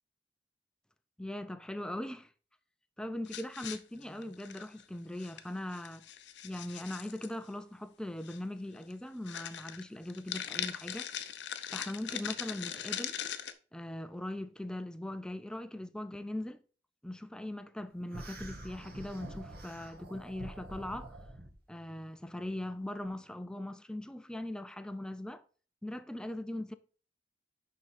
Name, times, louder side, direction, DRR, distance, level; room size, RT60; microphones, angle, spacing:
voice 1, 1.2-2.3 3.0-6.1 6.4-11.1 11.7-13.2 13.7-16.6 17.0-21.2 21.7-25.4 25.8-26.7, left 1 dB, 5° left, 0.4 m, -40 dB
sound 1, 3.2-4.8 5.2-5.4 5.7-7.3 8.2-8.4 8.8-8.9 9.3-13.5, left 9 dB, 90° left, 0.6 m, -40 dB
sound 2, 18.1-21.5, right 1 dB, 60° right, 1.6 m, -46 dB
10.5 x 3.7 x 4.2 m
head